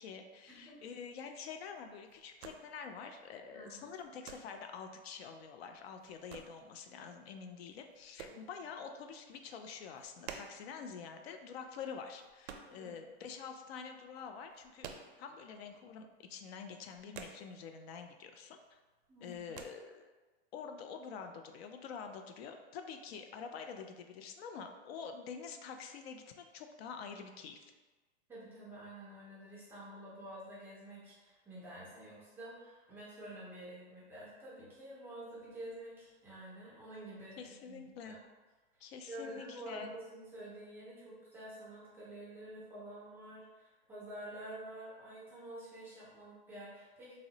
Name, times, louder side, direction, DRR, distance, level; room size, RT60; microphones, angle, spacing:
voice 1, 0.0-14.9 15.2-18.8 19.2-20.1 20.5-27.7 37.4-38.2 38.8-39.9, left 6 dB, 70° left, 6 dB, 0.5 m, -47 dB
sound 1, 0.5-13.5 13.8-15.7 16.0-16.1 16.4-18.0 18.3-18.8 19.0-19.7, right 6 dB, 80° right, 0.5 m, -52 dB
voice 2, 3.5-3.9 8.3-8.4 12.5-12.9 19.1-19.4 28.3-38.2 38.8-47.2, right 1 dB, 5° right, -8 dB, 0.3 m, -49 dB
3.7 x 2.1 x 2.7 m, 1.2 s
supercardioid pair, 145°, 32 cm